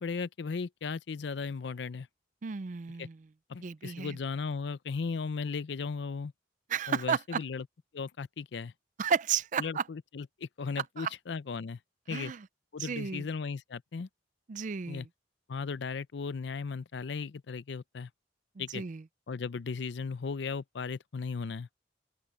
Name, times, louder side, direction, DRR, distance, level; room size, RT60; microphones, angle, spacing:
voice 1, 0.0-2.1 3.0-3.1 3.5-6.3 6.9-7.7 7.9-8.7 9.6-11.8 12.1-12.3 12.7-14.1 14.9-15.1 15.5-18.1 18.6-18.8 19.3-21.7, left 5 dB, 70° left, 0.5 m, -36 dB
voice 2, 2.4-3.3 3.6-4.2 6.7-7.4 9.0-9.8 11.0-11.1 12.1-12.5 12.8-13.3 14.5-15.1 18.6-19.0, right 6 dB, 45° right, 0.4 m, -33 dB
open air
head